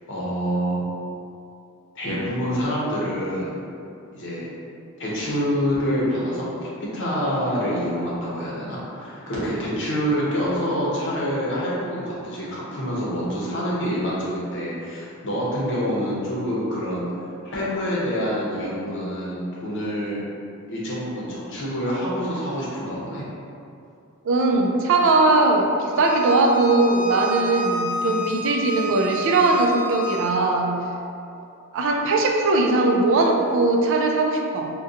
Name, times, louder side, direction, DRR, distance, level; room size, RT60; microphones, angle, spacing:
voice 1, 0.1-0.8 2.0-3.6 4.1-4.5 5.0-20.2 20.7-23.2, equal, 55° left, -6 dB, 0.8 m, -26 dB
voice 2, 24.2-30.8 31.7-34.7, right 2 dB, 60° right, 1 dB, 0.4 m, -20 dB
Bowed string instrument, 25.9-30.4, equal, 85° left, 0.5 m, -30 dB
2.6 x 2.2 x 3.7 m, 2.5 s
head